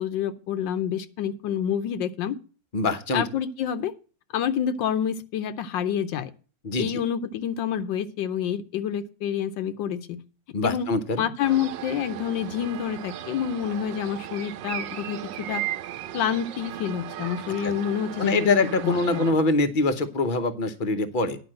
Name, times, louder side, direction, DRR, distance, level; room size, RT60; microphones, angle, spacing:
voice 1, 0.0-2.4 3.1-3.9 4.3-6.3 6.8-10.2 10.6-10.9 11.2-15.6 16.1-19.4, left 9 dB, 80° left, 10 dB, 1.5 m, -28 dB
voice 2, 2.7-3.3 6.6-6.9 10.5-11.2 17.6-17.7 18.2-21.4, left 3 dB, 35° left, 9 dB, 0.8 m, -24 dB
sound 1, 11.4-19.3, right 12 dB, 85° right, 1.4 m, -36 dB
10.5 x 5.2 x 7.5 m, 0.37 s
omnidirectional pair, 2.0 m